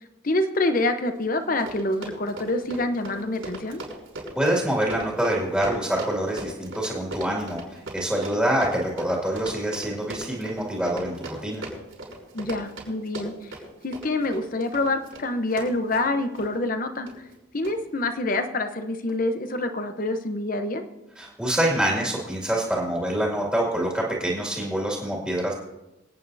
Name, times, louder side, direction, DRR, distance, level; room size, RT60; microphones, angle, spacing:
voice 1, 0.2-3.8 12.3-13.5 13.8-17.1 17.5-20.8, left 2 dB, 40° left, 8 dB, 0.8 m, -26 dB
Run, 1.2-1.3 1.5-16.5 17.1-17.3 17.6-17.7, right 1 dB, 85° right, 5.8 m, -38 dB
voice 2, 4.4-11.6 21.2-25.5, right 1 dB, ahead, -3 dB, 2.1 m, -26 dB
25.5 x 9.2 x 2.7 m, 0.96 s
head